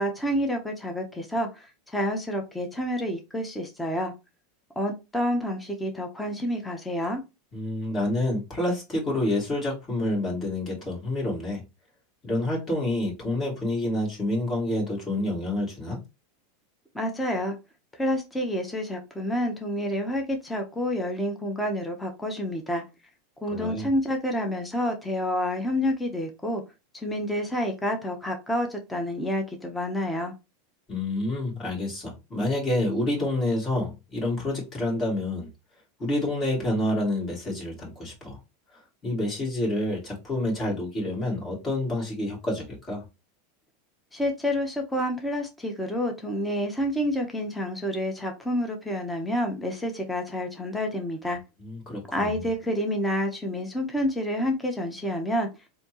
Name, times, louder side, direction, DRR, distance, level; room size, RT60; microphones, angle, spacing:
voice 1, 0.0-4.1 4.8-7.2 16.9-17.6 18.0-22.8 23.4-26.6 26.9-30.3 44.1-51.4 52.1-55.5, equal, 10° left, 0.9 m, -28 dB
voice 2, 7.5-11.6 12.2-16.0 23.5-23.9 30.9-35.5 36.0-38.4 39.0-43.0 51.6-52.4, left 1 dB, 25° left, 2.5 m, -28 dB
4.2 x 2.8 x 2.9 m
hypercardioid pair, 115°, 0 cm